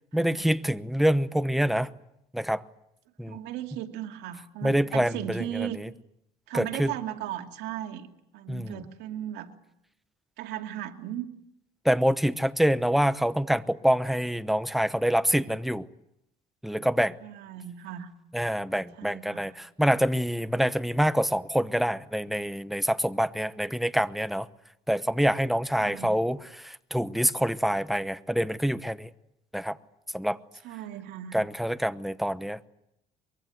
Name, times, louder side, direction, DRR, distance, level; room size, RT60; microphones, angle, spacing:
voice 1, 0.1-1.9 2.3-2.6 3.2-3.4 4.6-5.9 6.5-6.9 8.5-8.8 11.8-15.8 16.6-17.2 18.3-24.5 24.9-29.1 29.5-29.8 30.1-30.4 31.3-32.6, equal, ahead, 1.0 m, -26 dB
voice 2, 3.3-5.8 6.5-8.1 8.3-9.5 10.4-11.3 17.2-18.1 19.0-19.5 25.8-26.1 30.6-31.4, right 11 dB, 85° right, 2.6 m, -36 dB
24.0 x 23.0 x 9.2 m
cardioid pair, 110°, 17 cm